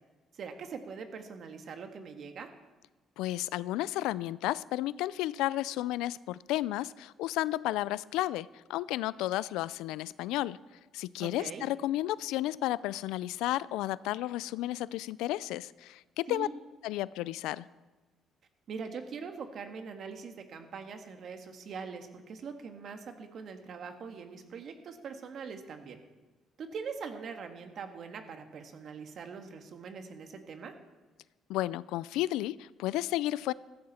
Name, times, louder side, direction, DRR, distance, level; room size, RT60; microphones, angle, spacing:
voice 1, 0.3-2.5 11.2-11.6 16.3-16.5 18.7-26.0 26.6-30.7, right 5 dB, 60° right, 6 dB, 1.8 m, -42 dB
voice 2, 3.2-10.6 10.9-16.5 16.8-17.7 31.5-33.5, left 15 dB, 90° left, 20 dB, 0.4 m, -32 dB
15.0 x 14.5 x 4.3 m, 1.2 s
cardioid pair, 85°, 0 cm